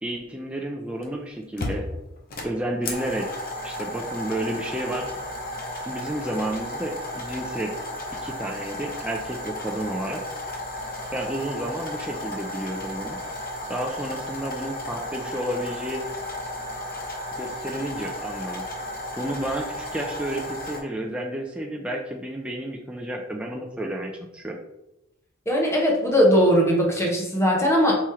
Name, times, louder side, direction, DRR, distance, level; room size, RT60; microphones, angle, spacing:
voice 1, 0.0-1.9 2.4-3.3 3.6-5.1 5.9-7.8 8.2-10.2 11.1-13.2 13.7-16.0 17.4-18.7 19.2-24.6, right 1 dB, 5° right, 1 dB, 0.3 m, -31 dB
sound 1, 1.0-1.1 1.6-20.8, left 1 dB, 50° left, 0.8 m, -34 dB
voice 2, 25.5-28.0, equal, 15° left, -1 dB, 0.9 m, -19 dB
4.4 x 3.1 x 3.5 m, 0.90 s
head